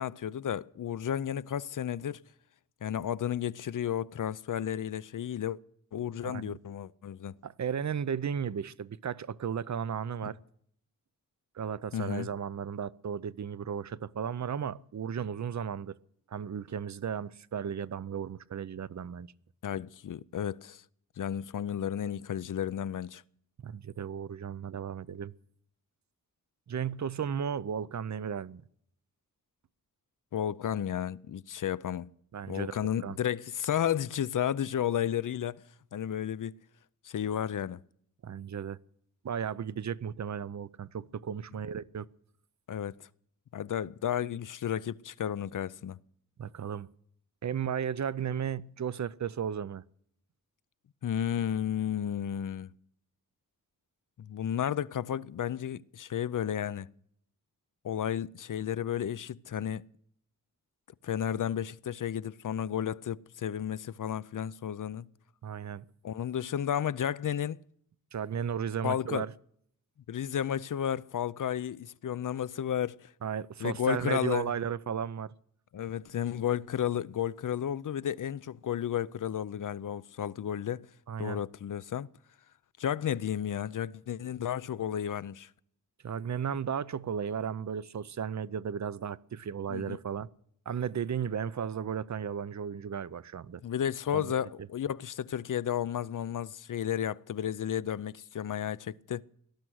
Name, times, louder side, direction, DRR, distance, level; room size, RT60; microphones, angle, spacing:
voice 1, 0.0-2.2 2.8-5.6 5.9-7.4 11.9-12.3 19.6-20.8 21.2-23.2 30.3-32.1 32.5-35.6 35.9-36.5 37.0-37.8 42.7-43.0 43.5-46.0 51.0-52.7 54.2-56.9 57.8-59.8 61.0-65.1 66.0-67.6 68.8-69.2 70.1-73.1 73.6-74.5 75.7-80.9 81.2-82.1 82.8-85.5 89.7-90.0 93.6-99.2, left 9 dB, 65° left, 0.5 m, -32 dB
voice 2, 6.2-6.6 7.4-10.4 11.5-16.0 16.3-19.3 23.6-25.3 26.7-28.6 32.3-33.2 38.2-38.8 39.2-42.1 46.4-46.9 47.4-49.8 65.4-65.8 68.1-69.3 73.2-75.3 81.1-81.4 86.0-90.3 90.7-93.6 94.1-94.3, right 8 dB, 55° right, 0.6 m, -35 dB
18.5 x 12.5 x 6.4 m
wide cardioid pair, 80°, 33 cm